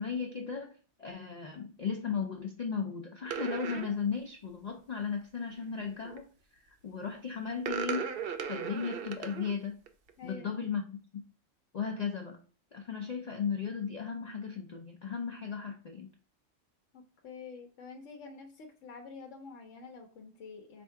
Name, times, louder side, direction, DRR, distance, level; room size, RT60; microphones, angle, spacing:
voice 1, 0.0-6.3 6.5-8.1 8.5-9.8 10.2-11.2 11.7-12.4 12.7-16.1, left 6 dB, 55° left, 3 dB, 0.4 m, -36 dB
sound 1, 3.3-3.9 5.9-6.2 7.6-9.5 9.9-10.1, right 7 dB, 60° right, 0.7 m, -36 dB
voice 2, 10.2-10.5 16.9-20.8, left 4 dB, 85° left, 3 dB, 1.0 m, -48 dB
3.5 x 2.5 x 4.4 m, 0.38 s
omnidirectional pair, 1.3 m